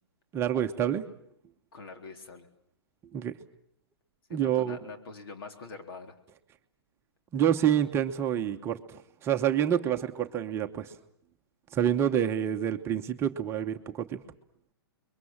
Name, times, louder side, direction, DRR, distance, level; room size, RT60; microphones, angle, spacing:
voice 1, 0.3-1.0 3.1-3.3 4.3-4.8 7.3-8.8 9.2-10.9 11.7-14.2, right 9 dB, 20° right, 5 dB, 1.0 m, -27 dB
voice 2, 1.7-2.5 4.3-6.2, left 4 dB, 65° left, 5 dB, 4.0 m, -44 dB
28.5 x 22.5 x 7.3 m, 0.69 s
hypercardioid pair, 150°, 13 cm